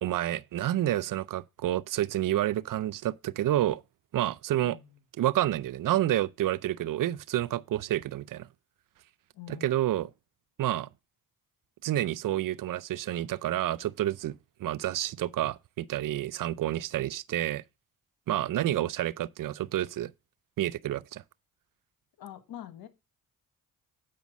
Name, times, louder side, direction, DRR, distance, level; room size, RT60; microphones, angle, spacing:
voice 1, 0.0-3.8 4.1-4.8 5.2-8.5 9.5-10.1 10.6-10.9 11.8-17.6 18.3-20.1 20.6-21.2, right 13 dB, 65° right, 0.5 m, -29 dB
voice 2, 9.3-9.7 18.3-18.5 22.2-22.9, left 11 dB, 85° left, 1.4 m, -45 dB
8.5 x 5.1 x 6.0 m
cardioid pair, 65°, 35 cm